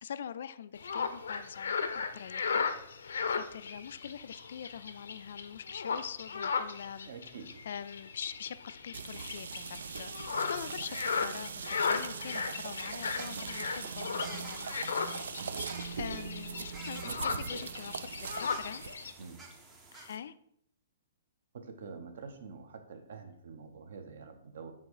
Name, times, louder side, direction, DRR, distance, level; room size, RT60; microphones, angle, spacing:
voice 1, 0.0-2.7 3.0-7.1 7.6-15.2 15.6-18.8 19.9-20.3, left 8 dB, 55° left, 14 dB, 0.3 m, -44 dB
sound 1, 0.8-19.1, left 5 dB, 90° left, 0.7 m, -36 dB
voice 2, 7.1-7.5 15.4-15.6 17.0-17.6 19.2-19.4 21.5-24.7, right 5 dB, 55° right, 7 dB, 1.0 m, -46 dB
sound 2, 8.9-18.9, right 6 dB, 75° right, 0.4 m, -41 dB
sound 3, 12.9-20.2, right 3 dB, 10° right, 0.6 m, -51 dB
7.4 x 3.6 x 4.7 m, 0.70 s
hypercardioid pair, 175°, 0 cm